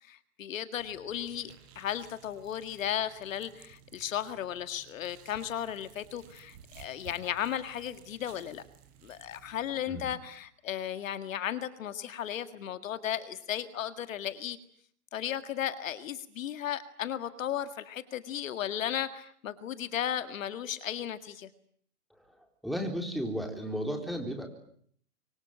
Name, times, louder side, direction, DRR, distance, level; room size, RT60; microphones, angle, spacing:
voice 1, 0.0-8.6 9.0-14.6 15.1-21.5, left 10 dB, 60° left, 11 dB, 2.0 m, -35 dB
sound 1, 0.8-9.8, right 8 dB, 40° right, 7.1 m, -56 dB
voice 2, 22.2-24.5, equal, ahead, 4 dB, 4.0 m, -34 dB
26.0 x 24.0 x 9.0 m, 0.63 s
hypercardioid pair, 135°, 45 cm